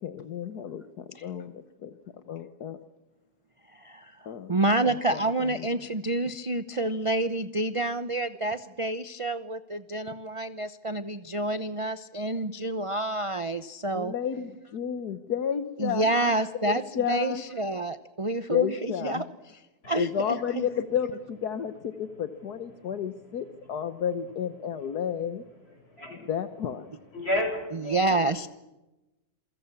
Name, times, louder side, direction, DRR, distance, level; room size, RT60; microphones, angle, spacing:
voice 1, 0.0-1.9 2.3-2.8 4.3-4.6 4.8-5.7 13.9-17.4 18.5-19.2 19.9-25.4 26.3-26.9, left 8 dB, 75° left, 10 dB, 1.7 m, -31 dB
voice 2, 3.8-14.1 15.8-16.8 17.1-19.2 19.9-20.6 27.7-28.5, right 2 dB, 25° right, 12 dB, 0.7 m, -28 dB
voice 3, 25.8-26.3 27.1-28.3, left 1 dB, 40° left, 2 dB, 8.2 m, -32 dB
28.5 x 23.0 x 7.1 m, 0.99 s
omnidirectional pair, 1.7 m